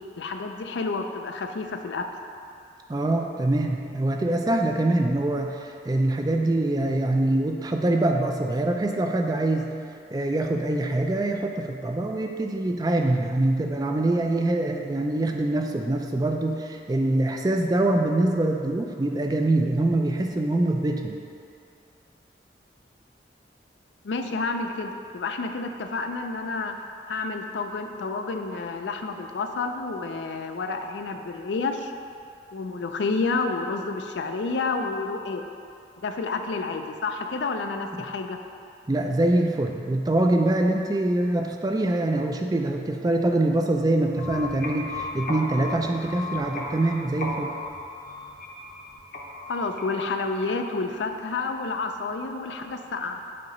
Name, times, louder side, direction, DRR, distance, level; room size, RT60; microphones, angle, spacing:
voice 1, 0.2-2.1 24.0-26.8 27.1-31.9 32.5-35.4 36.0-38.4 49.5-53.2, left 3 dB, 80° left, 5 dB, 0.4 m, -29 dB
voice 2, 2.9-9.7 10.1-21.2 37.9-38.0 38.9-47.6, right 2 dB, 20° right, 3 dB, 0.3 m, -24 dB
sound 1, 44.0-50.8, left 2 dB, 50° left, 0.7 m, -36 dB
7.5 x 2.9 x 5.3 m, 2.5 s
head